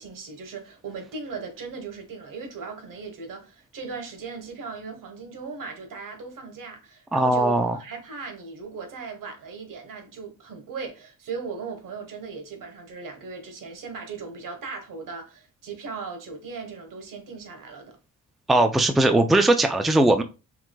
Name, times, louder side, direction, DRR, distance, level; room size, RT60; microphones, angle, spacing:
voice 1, 0.0-18.0, right 5 dB, 80° right, 1.2 m, -38 dB
voice 2, 7.1-7.8 18.5-20.2, right 2 dB, ahead, 0.4 m, -19 dB
4.6 x 3.6 x 2.2 m
cardioid pair, 110°, 32 cm